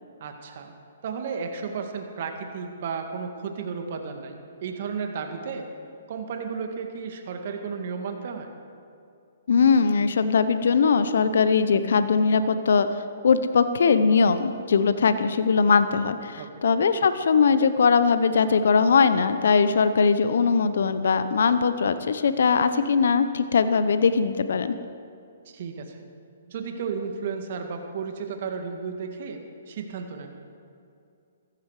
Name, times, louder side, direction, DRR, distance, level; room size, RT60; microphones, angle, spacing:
voice 1, 0.2-0.7 1.0-5.6 6.1-8.5 16.4-16.5 25.5-26.1 26.5-29.4 29.7-30.3, right 5 dB, 55° right, 4 dB, 1.9 m, -33 dB
voice 2, 9.5-12.9 13.2-24.7, left 5 dB, 70° left, 12 dB, 0.8 m, -21 dB
15.0 x 14.5 x 5.0 m, 2.5 s
hypercardioid pair, 135°, 0 cm